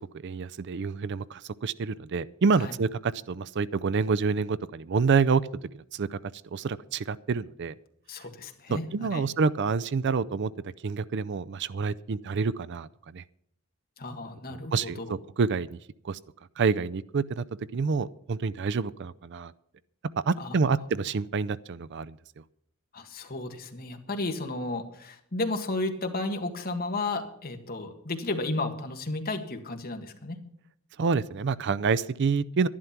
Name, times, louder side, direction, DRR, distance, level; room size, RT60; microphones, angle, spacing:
voice 1, 0.2-5.4 5.9-6.2 6.5-7.7 8.7-10.5 10.8-12.9 13.1-13.2 14.5-15.8 16.0-16.2 16.6-17.4 17.7-19.5 20.3-22.2 31.0-32.7, right 5 dB, 55° right, 16 dB, 0.4 m, -27 dB
voice 2, 8.1-9.3 14.0-15.2 20.4-20.9 22.9-30.4, left 2 dB, 45° left, 5 dB, 1.7 m, -33 dB
11.5 x 11.0 x 5.9 m, 0.72 s
head